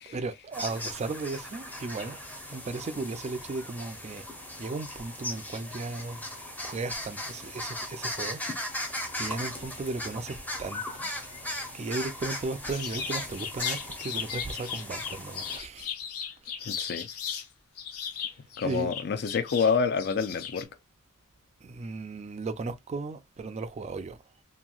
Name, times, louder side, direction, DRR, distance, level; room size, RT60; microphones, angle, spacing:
voice 1, 0.0-2.2 2.5-4.2 4.6-6.2 6.6-8.8 9.2-11.1 11.7-15.9 16.6-16.7 18.6-18.9 21.6-24.2, right 3 dB, 30° right, 0.3 m, -36 dB
sound 1, 0.5-15.6, left 1 dB, 10° left, 0.6 m, -38 dB
sound 2, 12.7-17.5 17.8-20.6, left 8 dB, 85° left, 0.7 m, -37 dB
voice 2, 16.7-17.1 18.6-20.7, left 5 dB, 50° left, 0.4 m, -28 dB
2.9 x 2.6 x 2.3 m
head